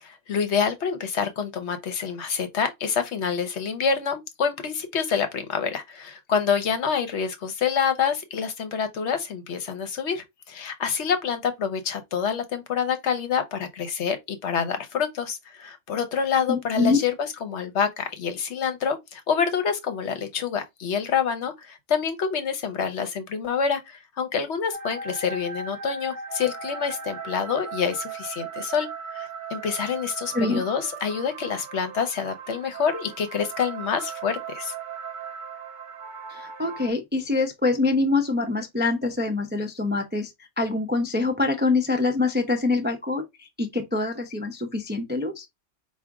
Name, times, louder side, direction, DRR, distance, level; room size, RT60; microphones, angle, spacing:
voice 1, 0.0-17.1 17.4-34.7, left 6 dB, 70° left, 1.1 m, -27 dB
voice 2, 16.5-17.0 30.3-30.6 36.3-40.3 40.6-45.5, left 3 dB, 15° right, 0.4 m, -25 dB
sound 1, 24.7-36.9, right 5 dB, 45° right, 1.0 m, -37 dB
4.9 x 2.5 x 3.5 m
omnidirectional pair, 1.3 m